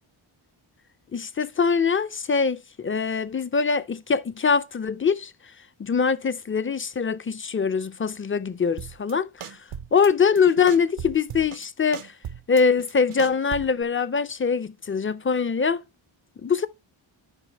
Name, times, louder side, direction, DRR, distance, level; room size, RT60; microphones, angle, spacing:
voice 1, 1.1-5.3 5.8-9.6 9.9-12.1 12.5-15.8 16.4-16.7, left 5 dB, 25° left, 0.4 m, -23 dB
sound 1, 8.8-9.1 9.4-10.1 10.4-11.7 11.9-13.8, right 8 dB, 85° right, 0.7 m, -38 dB
12.5 x 5.2 x 2.9 m
wide cardioid pair, 120°, 49 cm